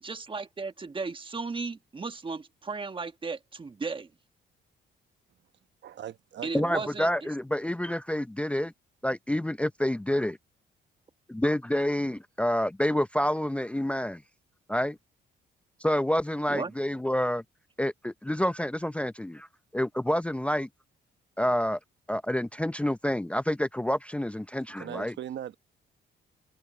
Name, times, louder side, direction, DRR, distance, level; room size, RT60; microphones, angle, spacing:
voice 1, 0.0-4.1 6.4-7.3 16.5-16.7, right 4 dB, 25° right, 1.3 m, -35 dB
voice 2, 5.8-7.1 24.8-25.6, right 10 dB, 65° right, 1.1 m, -40 dB
voice 3, 6.5-8.7 9.0-10.4 11.3-14.2 14.7-15.0 15.8-17.4 17.8-19.5 19.7-20.7 21.4-21.8 22.1-25.1, left 1 dB, 5° left, 0.6 m, -28 dB
open air
cardioid pair, 90°, 20 cm